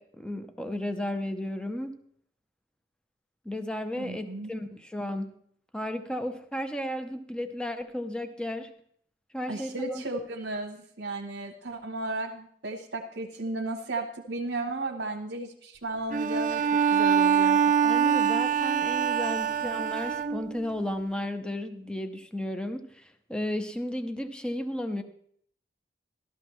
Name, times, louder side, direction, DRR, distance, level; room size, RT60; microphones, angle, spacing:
voice 1, 0.0-1.9 3.4-5.3 5.7-8.7 9.3-10.0 17.6-25.0, left 1 dB, 5° left, 7 dB, 0.6 m, -34 dB
voice 2, 4.0-4.5 9.5-16.6 16.9-17.6, right 2 dB, 75° right, 1 dB, 1.1 m, -34 dB
Bowed string instrument, 16.1-20.7, right 7 dB, 45° right, 0.5 m, -24 dB
13.5 x 13.0 x 3.1 m, 0.65 s
head